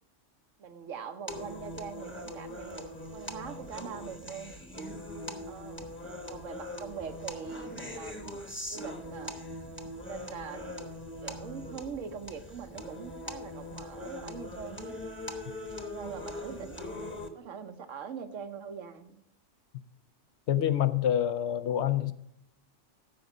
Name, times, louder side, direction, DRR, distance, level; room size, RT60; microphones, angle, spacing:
voice 1, 0.6-2.8 3.1-4.6 5.5-5.9 6.3-8.4 8.7-9.4 10.1-10.7 11.2-14.9 15.8-19.2, right 6 dB, 90° right, 1.3 m, -42 dB
sound 1, 1.3-17.3, left 1 dB, 10° left, 1.0 m, -41 dB
voice 2, 20.5-22.1, left 10 dB, 70° left, 0.9 m, -27 dB
13.0 x 5.4 x 5.0 m
omnidirectional pair, 1.3 m